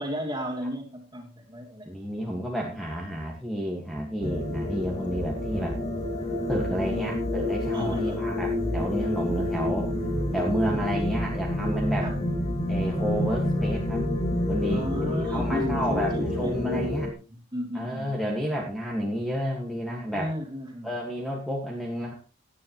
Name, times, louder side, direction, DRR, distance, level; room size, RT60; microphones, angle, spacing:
voice 1, 0.0-1.9 6.5-7.2 7.7-8.2 10.7-10.8 12.0-12.2 14.7-16.9 17.3-18.3 20.1-20.9, equal, 20° right, 2 dB, 2.8 m, -34 dB
voice 2, 1.8-5.8 6.5-9.9 10.3-12.1 12.7-14.1 14.5-16.1 16.4-17.1 17.7-20.3 20.8-22.1, equal, ahead, -1 dB, 1.6 m, -31 dB
sound 1, 4.2-17.1, left 1 dB, 30° left, 2.1 m, -28 dB
17.0 x 9.7 x 3.0 m, 0.33 s
head